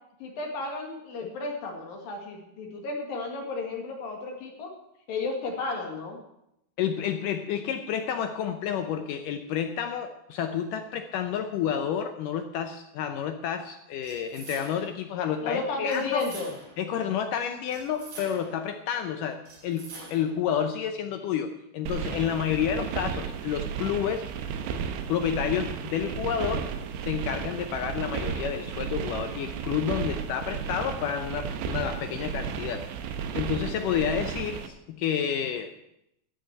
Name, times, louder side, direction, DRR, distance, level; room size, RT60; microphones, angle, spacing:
voice 1, 0.2-4.7 5.1-6.2 15.4-16.5, left 3 dB, 65° left, 1 dB, 3.7 m, -33 dB
voice 2, 6.8-16.3 16.8-24.3 25.1-26.7 27.0-35.7, left 8 dB, 80° left, 7 dB, 1.9 m, -30 dB
sound 1, 14.0-15.0 15.9-16.8 17.7-18.7 19.4-20.4, right 3 dB, 55° right, 5.4 m, -45 dB
sound 2, 21.9-34.7, right 7 dB, 85° right, 3.1 m, -33 dB
13.5 x 6.8 x 8.9 m, 0.81 s
omnidirectional pair, 4.7 m